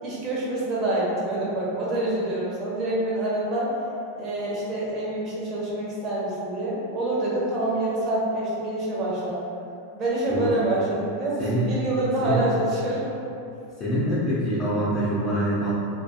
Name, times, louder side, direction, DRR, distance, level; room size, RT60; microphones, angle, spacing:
voice 1, 0.0-3.7 4.2-9.4 9.9-13.1, right 1 dB, 35° right, -6 dB, 0.8 m, -26 dB
voice 2, 13.8-15.8, right 1 dB, 30° left, -10 dB, 0.6 m, -25 dB
2.4 x 2.3 x 2.7 m, 2.6 s
supercardioid pair, 130°, 0 cm